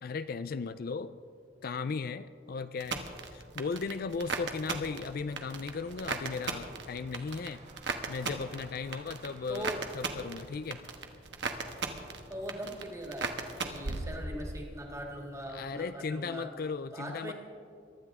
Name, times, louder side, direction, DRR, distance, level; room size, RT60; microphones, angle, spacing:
voice 1, 0.0-1.2 1.6-7.6 8.1-10.8 15.5-17.3, left 4 dB, 55° left, 12 dB, 0.4 m, -36 dB
sound 1, 2.8-14.7 15.0-15.6, right 4 dB, 70° right, 1.2 m, -38 dB
sound 2, 3.2-14.5, right 2 dB, 40° right, 1.4 m, -58 dB
voice 2, 9.3-9.8 12.3-16.5 16.9-17.3, right 1 dB, 20° right, 0 dB, 2.0 m, -41 dB
23.0 x 12.0 x 3.6 m, 2.4 s
head